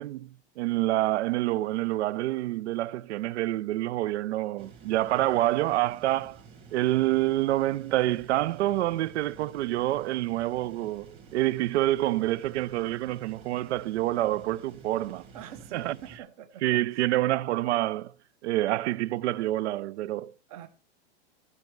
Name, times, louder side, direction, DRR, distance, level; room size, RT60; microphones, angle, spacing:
voice 1, 0.0-6.4 6.7-15.2 15.7-16.0 16.6-18.1 18.4-20.3, right 15 dB, 75° right, 0.5 m, -27 dB
sound 1, 4.6-16.2, right 5 dB, 15° right, 1.2 m, -51 dB
voice 2, 15.3-17.1 20.5-20.7, right 10 dB, 35° right, 0.6 m, -45 dB
14.0 x 5.5 x 4.5 m
supercardioid pair, 170°, 34 cm